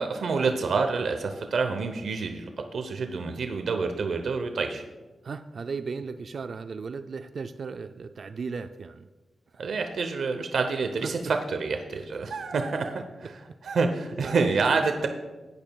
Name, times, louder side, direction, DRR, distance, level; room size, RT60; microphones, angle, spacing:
voice 1, 0.0-4.8 9.6-13.3 13.6-15.1, right 4 dB, 75° right, 6 dB, 0.8 m, -27 dB
voice 2, 5.2-9.1 9.5-9.6 11.0-11.1 13.2-13.3 14.2-14.5, right 5 dB, 55° right, 10 dB, 0.4 m, -36 dB
17.0 x 11.0 x 2.3 m, 1.2 s
wide cardioid pair, 145°, 0 cm